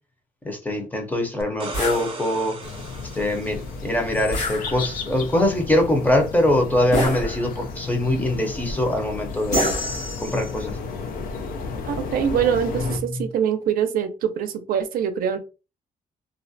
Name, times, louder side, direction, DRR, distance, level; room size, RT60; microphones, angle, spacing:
voice 1, 0.4-2.6 3.1-9.7 10.2-10.8 13.2-13.3, left 1 dB, 10° left, 0.6 m, -23 dB
sound 1, 1.4-4.2 7.1-7.2, right 3 dB, 40° right, 0.6 m, -37 dB
sound 2, 1.7-2.1 4.3-5.1 6.9-7.7 9.5-10.6, equal, 55° left, 1.2 m, -27 dB
sound 3, 2.6-13.0, left 4 dB, 90° left, 0.5 m, -33 dB
voice 2, 11.8-15.4, right 8 dB, 85° right, 0.4 m, -24 dB
2.4 x 2.0 x 2.6 m
cardioid pair, 130°, 14 cm